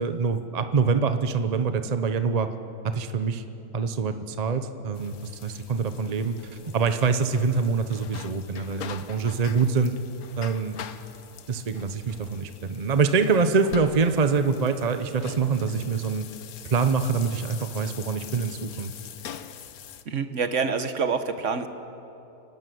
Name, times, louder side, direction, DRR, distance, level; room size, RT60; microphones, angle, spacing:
voice 1, 0.0-2.5 2.8-3.4 3.7-5.1 5.4-6.4 6.7-9.9 10.4-10.8 11.5-16.3 16.6-18.9, right 5 dB, 35° right, 9 dB, 0.6 m, -25 dB
sound 1, 4.9-20.0, left 9 dB, 65° left, 1.3 m, -44 dB
voice 2, 20.1-21.7, right 5 dB, 50° right, 9 dB, 1.3 m, -26 dB
29.0 x 12.5 x 9.4 m, 2.8 s
omnidirectional pair, 1.7 m